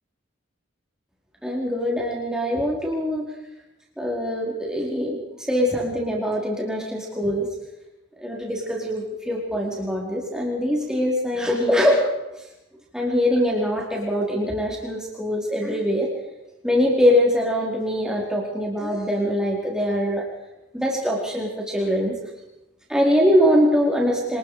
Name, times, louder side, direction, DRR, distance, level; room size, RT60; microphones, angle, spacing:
voice 1, 1.4-3.2 4.0-5.2 5.5-7.5 8.2-12.0 12.9-16.1 16.6-20.2 20.7-22.2 22.9-24.4, equal, 5° right, -2 dB, 4.6 m, -23 dB
26.0 x 20.5 x 5.1 m, 0.94 s
head